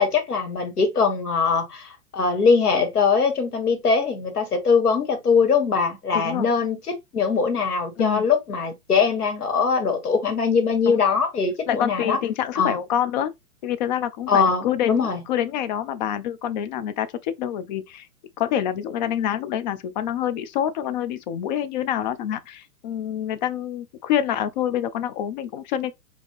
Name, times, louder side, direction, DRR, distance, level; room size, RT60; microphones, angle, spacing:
voice 1, 0.0-6.8 7.1-12.2 12.6-12.8 14.3-15.2, left 5 dB, 85° left, 1.9 m, -21 dB
voice 2, 6.1-6.5 8.0-8.3 10.9-11.2 11.7-13.3 13.6-18.1 18.4-25.9, left 10 dB, 30° left, 0.5 m, -27 dB
5.0 x 2.9 x 3.1 m
hypercardioid pair, 125°, 44 cm